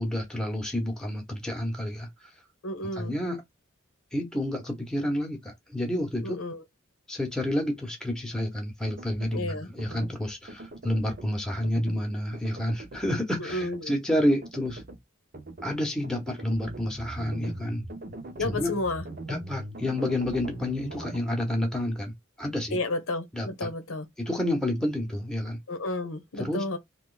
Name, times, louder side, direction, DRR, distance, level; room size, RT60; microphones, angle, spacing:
voice 1, 0.0-2.1 2.8-3.4 4.1-6.4 7.1-14.8 15.6-17.8 18.4-18.7 19.3-22.8 23.3-23.7 24.2-25.6 26.4-26.6, left 1 dB, 5° left, 0.9 m, -29 dB
voice 2, 2.6-3.1 6.2-6.6 9.3-9.7 13.4-13.9 18.4-19.0 22.7-24.1 25.7-26.8, left 2 dB, 90° left, 0.9 m, -31 dB
sound 1, 8.9-9.4 9.8-10.1 10.5-11.3 11.6-12.0 12.3-13.1 13.5-13.8 14.2-15.0 15.3-15.7 16.0-21.2, right 2 dB, 45° right, 0.7 m, -41 dB
2.9 x 2.3 x 3.9 m
head